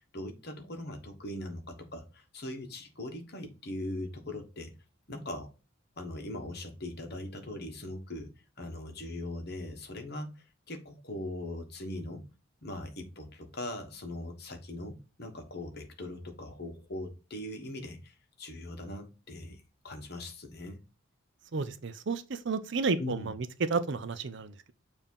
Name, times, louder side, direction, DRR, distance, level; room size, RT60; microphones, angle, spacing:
voice 1, 0.0-4.7 5.1-5.5 6.0-12.2 12.6-20.8 23.0-23.3, left 1 dB, 50° left, 1.3 m, -40 dB
voice 2, 21.5-24.7, right 4 dB, 55° right, 0.5 m, -32 dB
7.1 x 2.8 x 5.4 m
head